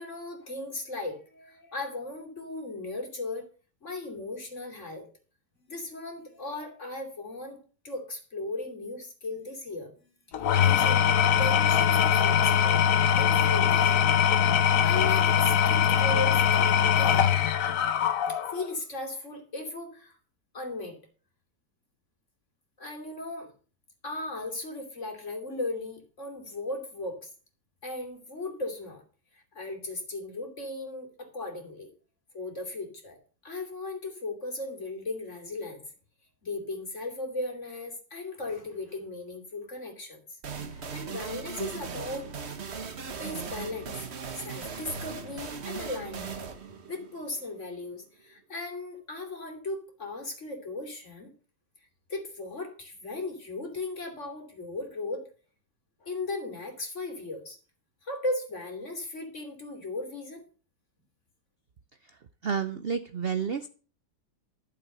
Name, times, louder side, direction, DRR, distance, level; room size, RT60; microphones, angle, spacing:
voice 1, 0.0-3.5 3.8-5.0 5.7-7.6 7.8-12.8 13.1-14.0 14.8-17.3 18.3-20.2 20.5-21.0 22.8-23.5 24.0-27.3 27.8-29.0 29.5-31.9 32.3-33.2 33.4-35.8 36.4-40.4 40.7-42.4 43.2-44.0 44.3-46.5 46.9-51.3 52.1-55.2 56.0-57.6 58.0-60.5, left 2 dB, 40° left, 3 dB, 3.2 m, -37 dB
Engine / Tools, 10.3-18.7, left 8 dB, 60° left, 1.1 m, -22 dB
sound 1, 40.4-47.9, right 6 dB, 40° right, 1.3 m, -38 dB
voice 2, 62.4-63.7, right 6 dB, 65° right, 12 dB, 0.6 m, -30 dB
12.5 x 7.0 x 6.5 m, 0.39 s
omnidirectional pair, 1.9 m